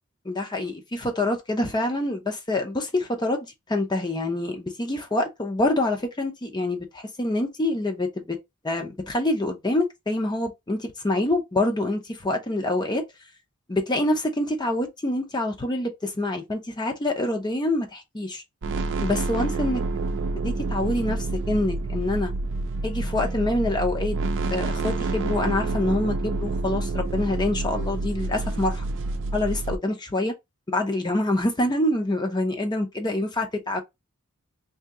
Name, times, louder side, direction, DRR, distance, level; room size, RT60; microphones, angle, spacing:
voice 1, 0.2-8.4 8.6-13.0 13.7-18.4 19.0-19.8 20.4-22.3 22.8-24.2 24.5-28.8 29.3-30.3 30.7-33.8, left 1 dB, 20° left, 0.6 m, -26 dB
sound 1, 18.6-29.8, right 3 dB, 60° right, 0.5 m, -28 dB
2.8 x 2.8 x 3.6 m
head